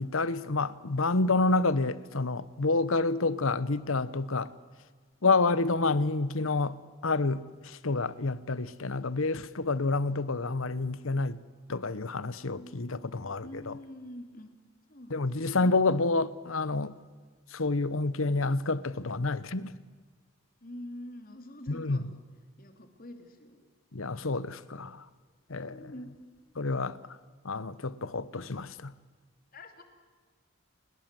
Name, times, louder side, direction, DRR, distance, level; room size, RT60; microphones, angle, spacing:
voice 1, 0.0-4.5 5.2-6.7 7.0-11.4 11.7-13.8 15.1-16.9 17.5-19.7 21.7-22.0 23.9-25.0 25.5-25.8 26.6-27.0 27.4-28.9, left 3 dB, 85° left, 1.0 m, -28 dB
voice 2, 12.5-14.5 14.9-15.7 20.6-22.0 22.6-23.6 25.5-26.1 29.5-29.8, left 1 dB, 45° left, 3.0 m, -46 dB
30.0 x 21.0 x 7.7 m
head